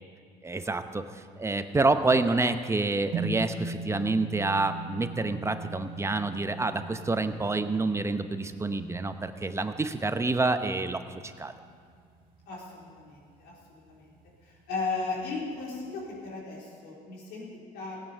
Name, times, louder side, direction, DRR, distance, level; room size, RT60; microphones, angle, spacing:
voice 1, 0.4-11.5, right 3 dB, 15° right, 9 dB, 0.8 m, -28 dB
sound 1, 3.1-11.6, right 3 dB, 55° right, 2.3 m, -40 dB
voice 2, 12.5-14.1 14.4-18.0, left 3 dB, 85° left, -3 dB, 3.9 m, -36 dB
17.0 x 9.1 x 6.9 m, 2.2 s
cardioid pair, 110°, 17 cm